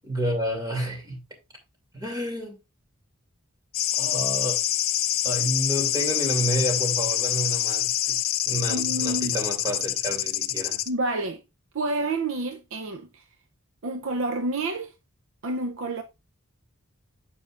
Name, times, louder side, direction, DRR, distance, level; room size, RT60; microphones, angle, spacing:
voice 1, 0.0-1.2 1.9-2.6 3.9-4.6 5.2-8.2 8.5-10.8, right 1 dB, 20° right, 2.4 m, -29 dB
sound 1, 3.7-10.9, left 13 dB, 45° left, 0.5 m, -26 dB
voice 2, 8.7-9.4 10.9-11.4 11.7-13.2 13.8-14.9 15.4-16.0, right 2 dB, 60° right, 0.6 m, -29 dB
9.4 x 6.9 x 2.4 m
head